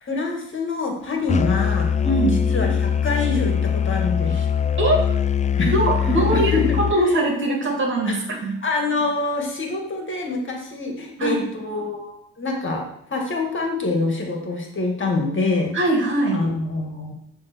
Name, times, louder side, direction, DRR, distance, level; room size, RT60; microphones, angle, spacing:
voice 1, 0.0-1.9 2.2-4.4 5.6-6.8 7.1-7.2 8.1-8.3 8.6-12.1 12.4-15.9 16.3-17.1, left 3 dB, 40° left, 1 dB, 2.0 m, -26 dB
Musical instrument, 1.3-7.0, left 8 dB, 25° left, 0.5 m, -22 dB
voice 2, 2.0-2.4 4.3-4.4 4.8-5.0 5.6-8.6 11.2-11.5 15.7-16.4, right 1 dB, 40° right, 1 dB, 2.4 m, -22 dB
10.0 x 3.6 x 6.2 m, 0.74 s
cardioid pair, 90°, 30 cm